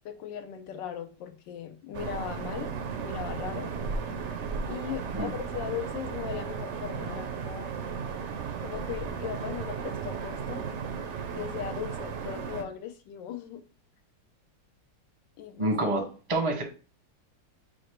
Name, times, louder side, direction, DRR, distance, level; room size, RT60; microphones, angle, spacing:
voice 1, 0.0-2.7 3.0-3.7 4.7-7.7 8.6-10.7 11.3-13.6 15.4-15.8, left 9 dB, 90° left, 6 dB, 1.4 m, -38 dB
sound 1, 1.9-12.6, right 6 dB, 70° right, 0.6 m, -35 dB
voice 2, 15.6-16.6, right 2 dB, 30° right, 4 dB, 0.5 m, -27 dB
4.8 x 2.2 x 4.4 m, 0.37 s
omnidirectional pair, 1.9 m